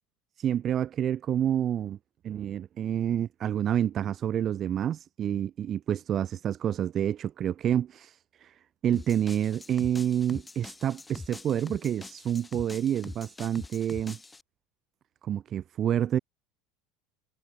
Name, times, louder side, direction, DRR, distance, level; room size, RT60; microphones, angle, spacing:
voice 1, 0.4-2.0 2.2-8.5 8.8-14.2 15.2-16.2, right 10 dB, 40° right, 0.6 m, -28 dB
sound 1, 8.9-14.4, left 3 dB, 15° left, 2.3 m, -44 dB
hypercardioid pair, 85°, 0 cm